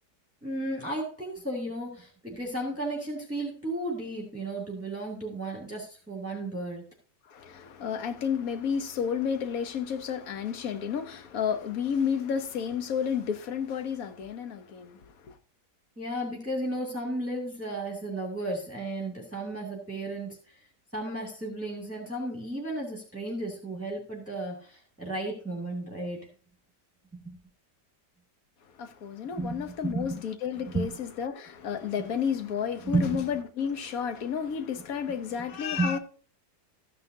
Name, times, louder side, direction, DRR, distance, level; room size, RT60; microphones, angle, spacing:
voice 1, 0.4-6.8 16.0-20.4 20.9-26.3 27.2-27.4 29.4-30.1 30.7-30.9 32.8-33.2 35.8-35.9, right 2 dB, 10° right, 2.4 m, -33 dB
voice 2, 7.3-15.4 28.7-36.0, left 7 dB, 60° left, 1.3 m, -31 dB
14.5 x 9.6 x 2.8 m
omnidirectional pair, 1.8 m